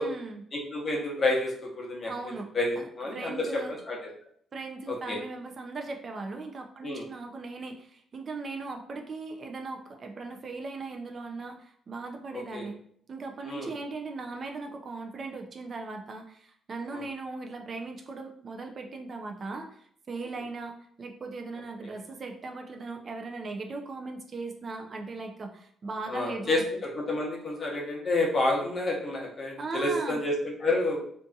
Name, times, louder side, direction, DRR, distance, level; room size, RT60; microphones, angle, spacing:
voice 1, 0.0-0.4 2.1-2.5 2.8-3.7 4.5-12.8 13.1-26.6 29.6-30.2, right 3 dB, 45° right, 4 dB, 0.4 m, -38 dB
voice 2, 0.5-2.1 2.5-4.0 4.9-5.2 6.8-7.1 12.3-12.7 13.4-13.7 16.9-17.0 20.2-20.3 26.1-31.0, left 2 dB, 40° left, -1 dB, 0.8 m, -29 dB
2.6 x 2.5 x 2.3 m, 0.64 s
cardioid pair, 90°, 0 cm